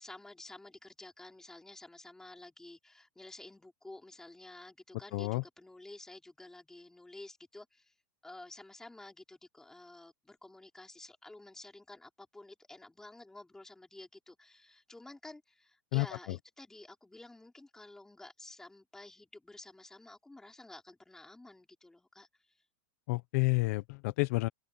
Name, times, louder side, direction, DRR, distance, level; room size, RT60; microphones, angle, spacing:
voice 1, 0.0-7.9 8.2-22.3, left 2 dB, 5° left, 4.0 m, -51 dB
voice 2, 5.1-5.4 15.9-16.4 23.1-24.5, left 24 dB, 55° left, 1.0 m, -30 dB
supercardioid pair, 160°, 10 cm